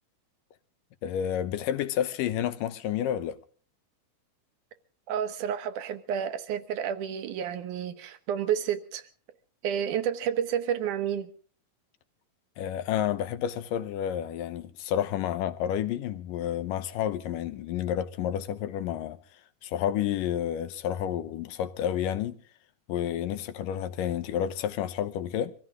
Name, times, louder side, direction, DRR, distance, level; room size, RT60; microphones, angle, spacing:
voice 1, 1.0-3.4 12.6-19.2 19.6-22.4 22.9-25.6, left 10 dB, 80° left, 2.6 m, -30 dB
voice 2, 5.1-9.1 9.6-11.3, right 9 dB, 70° right, 2.5 m, -30 dB
24.5 x 15.5 x 3.7 m
omnidirectional pair, 3.9 m